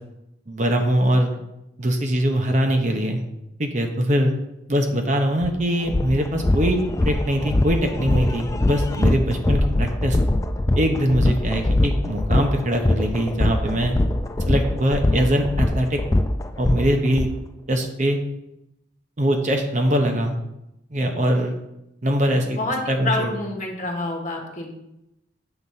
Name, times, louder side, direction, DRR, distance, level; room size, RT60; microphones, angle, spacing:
voice 1, 0.5-1.3 1.8-3.2 3.6-4.3 4.7-10.2 10.8-14.0 14.5-16.0 16.6-17.3 17.7-18.2 19.2-20.4 20.9-21.5 22.0-22.6 22.9-23.3, equal, 40° right, 3 dB, 0.9 m, -22 dB
sound 1, 5.4-5.5 5.9-17.3, left 1 dB, 15° left, 0.3 m, -22 dB
voice 2, 22.5-24.7, left 2 dB, 40° left, 1 dB, 1.4 m, -27 dB
7.9 x 4.0 x 5.6 m, 0.87 s
head